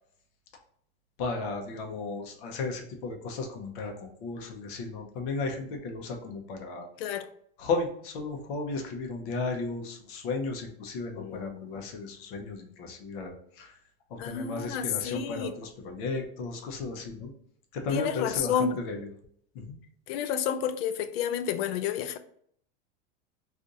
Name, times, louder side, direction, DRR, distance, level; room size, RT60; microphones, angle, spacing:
voice 1, 1.2-6.9 7.6-13.7 14.1-17.3 17.7-19.1 19.5-19.8, left 3 dB, 55° left, 0.8 m, -34 dB
voice 2, 11.2-11.7 14.2-15.5 17.9-18.8 20.1-22.2, left 8 dB, 80° left, 0.4 m, -30 dB
2.5 x 2.5 x 4.0 m
supercardioid pair, 150°, 30 cm